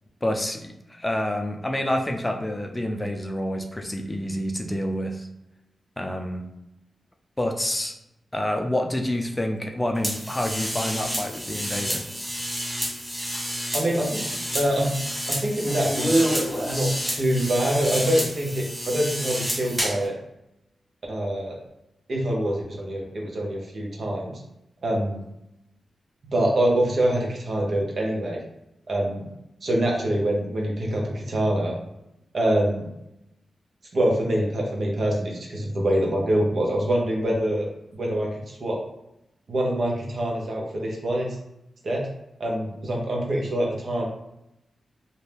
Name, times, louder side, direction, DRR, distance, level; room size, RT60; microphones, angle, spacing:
voice 1, 0.2-5.3 6.0-6.4 7.4-7.9 8.3-12.0, left 1 dB, 20° left, 3 dB, 0.5 m, -28 dB
sound 1, 10.0-20.1, equal, 10° right, 1.0 m, -28 dB
voice 2, 13.7-14.3 14.5-15.0 15.3-16.1 16.6-20.2 21.1-21.6 22.1-24.3 24.8-25.2 26.3-28.4 28.9-29.3 29.6-31.7 32.3-32.9 33.9-37.7 37.9-38.8 39.5-41.4 41.8-42.0 42.4-44.1, right 1 dB, 65° right, -1 dB, 0.8 m, -25 dB
2.5 x 2.2 x 3.3 m, 0.87 s
cardioid pair, 50°, 0 cm